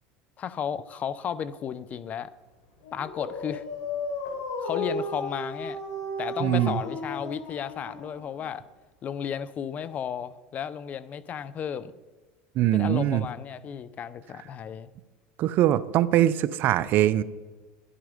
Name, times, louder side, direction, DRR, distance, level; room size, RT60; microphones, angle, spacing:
voice 1, 0.4-2.3 2.9-3.6 4.6-5.8 6.2-8.6 9.0-11.9 12.7-14.9, left 8 dB, 35° left, 17 dB, 0.6 m, -34 dB
Dog, 2.8-8.5, left 2 dB, 75° left, 3.7 m, -34 dB
voice 2, 6.4-6.8 12.6-13.3 15.4-17.2, right 13 dB, 55° right, 16 dB, 0.6 m, -22 dB
11.0 x 11.0 x 5.1 m, 1.3 s
supercardioid pair, 115°, 4 cm